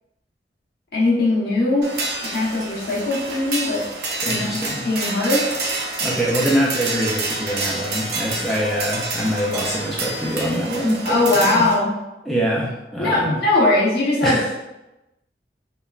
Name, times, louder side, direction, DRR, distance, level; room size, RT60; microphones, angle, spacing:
voice 1, 0.9-1.9 2.3-3.8 4.2-4.6 4.8-5.6 11.0-11.9 13.0-14.5, left 2 dB, 60° left, -6 dB, 0.9 m, -20 dB
sound 1, 1.8-11.7, right 2 dB, 65° right, 0.5 m, -28 dB
voice 2, 4.2-4.8 6.0-11.6 12.3-13.4 14.2-14.5, equal, ahead, -5 dB, 0.3 m, -24 dB
3.1 x 2.1 x 2.3 m, 0.96 s
head